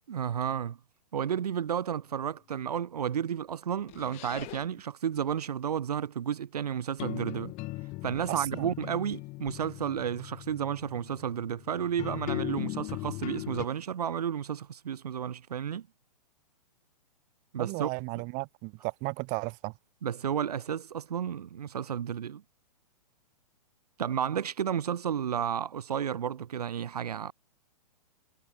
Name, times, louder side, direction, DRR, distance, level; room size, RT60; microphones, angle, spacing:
voice 1, 0.1-0.8 1.1-7.5 8.0-15.9 17.5-18.2 20.0-22.4 24.0-27.3, right 8 dB, 70° right, 5.2 m, -32 dB
sound 1, 3.9-4.8 7.0-13.7, left 22 dB, 35° left, 4.3 m, -39 dB
voice 2, 8.3-8.7 17.6-19.7, right 32 dB, 40° right, 7.1 m, -35 dB
hypercardioid pair, 125°, 20 cm